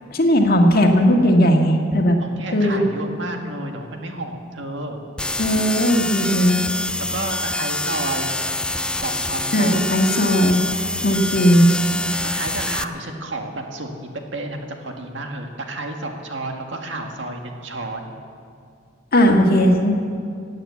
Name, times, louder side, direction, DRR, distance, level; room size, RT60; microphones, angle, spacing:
voice 1, 0.1-2.2 2.5-2.8 5.4-6.6 9.5-10.6 11.0-11.7 19.1-20.0, equal, 50° left, 2 dB, 1.7 m, -17 dB
voice 2, 2.2-5.0 5.4-5.7 7.0-8.3 8.9-9.8 12.2-18.1, right 2 dB, 75° right, 3 dB, 1.9 m, -31 dB
sound 1, 5.2-12.8, left 2 dB, 5° left, 0.3 m, -26 dB
17.0 x 9.1 x 8.4 m, 2.3 s
head